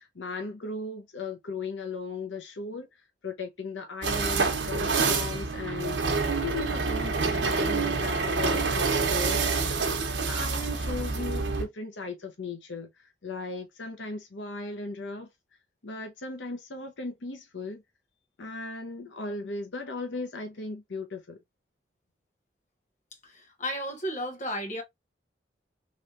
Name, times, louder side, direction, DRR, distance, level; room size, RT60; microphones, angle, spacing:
voice 1, 0.0-9.6 10.2-15.3 15.8-17.8 18.4-21.4, left 3 dB, 90° left, 0.8 m, -37 dB
sound 1, 4.0-11.6, right 4 dB, 90° right, 0.9 m, -27 dB
voice 2, 23.2-24.8, equal, 45° left, 1.3 m, -33 dB
3.2 x 3.1 x 2.5 m
head